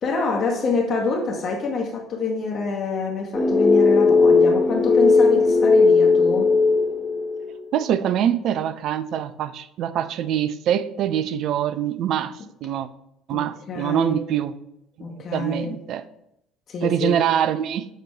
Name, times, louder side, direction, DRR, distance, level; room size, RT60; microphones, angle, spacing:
voice 1, 0.0-6.5 13.3-14.2 15.0-15.8 16.7-17.1, left 3 dB, 45° left, 0 dB, 1.1 m, -26 dB
sound 1, 3.3-7.5, left 4 dB, 15° left, 0.6 m, -17 dB
voice 2, 7.7-12.3 12.6-12.9 13.3-14.5 15.1-16.0 16.8-17.9, right 9 dB, 55° right, 13 dB, 0.4 m, -24 dB
7.4 x 3.1 x 4.5 m, 0.79 s
figure-of-eight pair, 55°, 0 cm